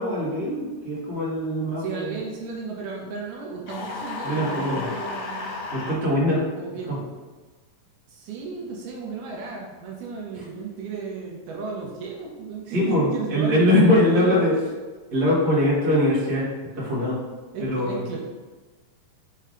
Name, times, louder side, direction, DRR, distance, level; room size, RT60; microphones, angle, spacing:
voice 1, 0.0-2.2 4.2-4.9 5.7-6.4 6.9-7.0 10.3-10.4 12.7-14.5 15.1-16.5 16.7-17.1 17.6-18.0, left 1 dB, 50° right, -8 dB, 1.2 m, -22 dB
voice 2, 1.8-5.5 6.6-7.1 8.1-14.7 17.5-18.3, right 4 dB, 80° right, -1 dB, 2.1 m, -34 dB
sound 1, 3.7-6.0, left 3 dB, 80° left, 2.3 m, -33 dB
5.5 x 3.2 x 2.5 m, 1.3 s
omnidirectional pair, 3.8 m